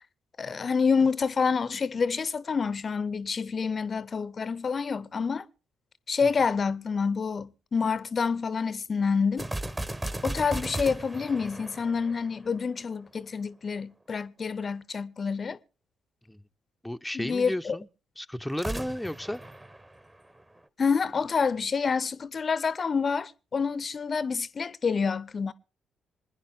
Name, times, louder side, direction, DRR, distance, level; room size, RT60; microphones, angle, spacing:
voice 1, 0.4-5.5 6.1-9.5 10.2-15.6 17.1-17.8 20.8-25.5, left 5 dB, 40° left, 0.6 m, -28 dB
sound 1, 9.4-12.8 18.5-20.6, right 1 dB, 20° right, 1.1 m, -36 dB
voice 2, 16.8-17.9 18.2-19.4, left 1 dB, 5° left, 0.6 m, -33 dB
26.5 x 10.0 x 3.5 m
figure-of-eight pair, 40°, 0 cm